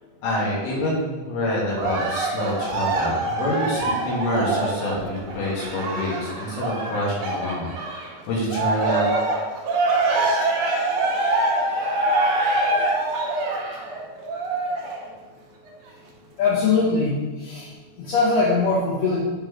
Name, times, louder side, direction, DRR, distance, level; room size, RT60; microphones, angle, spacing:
voice 1, 0.2-9.0, left 1 dB, 85° left, -5 dB, 3.5 m, -27 dB
Cheering, 1.8-8.1 8.5-15.0 15.7-15.8, right 2 dB, 75° right, 1.6 m, -24 dB
voice 2, 16.4-19.2, left 4 dB, 70° left, -7 dB, 2.5 m, -22 dB
9.1 x 3.7 x 3.1 m, 1.2 s
omnidirectional pair, 4.4 m